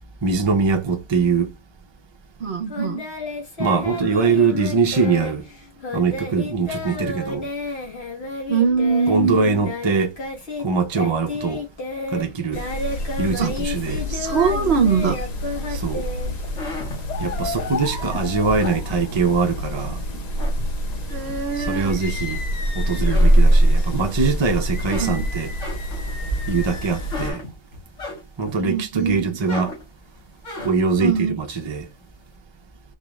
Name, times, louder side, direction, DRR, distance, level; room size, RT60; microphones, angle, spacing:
voice 1, 0.2-1.5 3.6-5.4 5.9-7.5 9.1-10.1 10.6-11.6 12.1-12.6 13.2-14.0 15.7-16.0 17.2-20.0 21.6-22.4 22.7-25.5 26.5-27.4 28.4-29.7 30.6-31.9, right 4 dB, 30° right, 0.5 m, -22 dB
voice 2, 2.4-3.0 8.5-9.5 13.4-13.5 14.1-15.2 21.1-22.0 25.0-25.2 28.5-29.3 31.0-31.4, right 5 dB, 60° right, 0.9 m, -22 dB
Singing, 2.7-10.7 10.9-16.8, left 3 dB, 55° left, 1.7 m, -31 dB
sound 1, 12.5-27.3, equal, 40° left, 0.7 m, -24 dB
sound 2, 16.2-19.6 20.1-21.2 21.7-22.7 23.0-24.2 24.6-28.6 29.0-31.0, left 1 dB, 70° left, 1.9 m, -35 dB
4.3 x 2.4 x 3.1 m
omnidirectional pair, 1.3 m